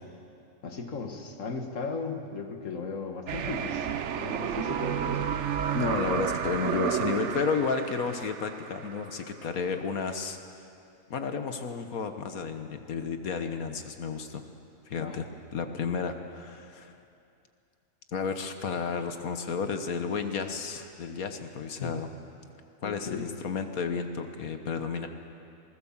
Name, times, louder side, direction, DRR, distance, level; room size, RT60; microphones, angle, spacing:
voice 1, 0.6-5.5 14.9-15.2 21.8-22.0 22.8-23.3, left 4 dB, 65° left, 4 dB, 2.1 m, -37 dB
sound 1, 3.3-9.2, right 8 dB, 60° right, 1.0 m, -31 dB
voice 2, 5.7-10.4 11.1-14.4 14.9-15.3 15.5-16.9 18.1-22.1 22.8-25.1, left 5 dB, 80° left, 7 dB, 1.6 m, -32 dB
26.5 x 19.0 x 7.3 m, 2.6 s
omnidirectional pair, 1.5 m